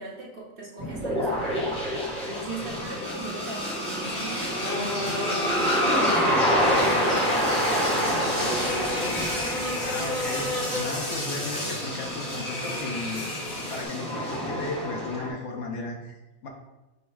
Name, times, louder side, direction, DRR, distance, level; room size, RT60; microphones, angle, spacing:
voice 1, 0.0-1.8 2.2-6.3 6.9-8.6, right 3 dB, 50° right, -4 dB, 0.8 m, -39 dB
sound 1, 0.8-15.3, equal, 5° left, 1.0 m, -28 dB
sound 2, 4.0-13.9, left 1 dB, 30° left, 0.9 m, -31 dB
voice 2, 9.6-13.2 13.7-16.1 16.4-16.5, left 2 dB, 65° left, 1 dB, 1.0 m, -35 dB
5.4 x 2.0 x 4.6 m, 1.0 s
omnidirectional pair, 1.4 m